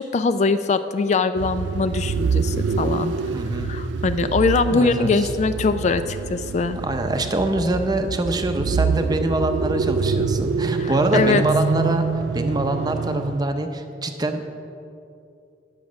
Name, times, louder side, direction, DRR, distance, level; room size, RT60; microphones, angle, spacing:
voice 1, 0.0-3.1 3.7-6.8 10.8-11.4, left 4 dB, 40° left, 10 dB, 0.3 m, -22 dB
sound 1, 1.4-13.5, right 5 dB, 85° right, 0.4 m, -26 dB
voice 2, 3.3-3.7 4.7-5.1 6.8-12.0 12.3-14.4, right 1 dB, 20° right, 6 dB, 0.7 m, -24 dB
10.5 x 7.1 x 6.2 m, 2.6 s
head